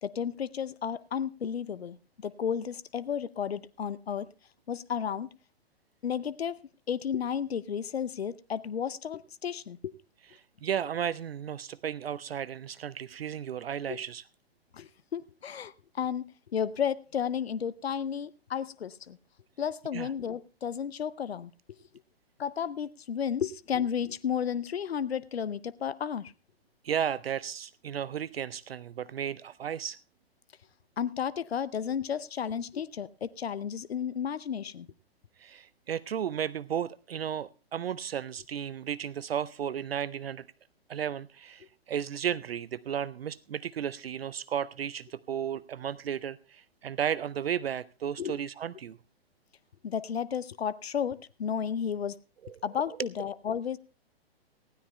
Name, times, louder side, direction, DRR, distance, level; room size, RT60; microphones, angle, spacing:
voice 1, 0.0-2.0 2.2-4.3 4.7-5.3 6.0-6.6 6.9-9.9 13.9-14.0 14.7-15.7 16.0-16.3 16.5-19.2 19.6-21.5 22.4-26.3 31.0-34.9 48.2-48.4 49.8-52.2 52.6-53.8, left 8 dB, 80° left, 0.6 m, -32 dB
voice 2, 10.6-14.2 19.9-20.1 26.8-30.0 35.4-40.4 40.9-49.0 52.4-52.6, right 9 dB, 70° right, 0.5 m, -34 dB
19.5 x 16.0 x 2.2 m
figure-of-eight pair, 120°, 31 cm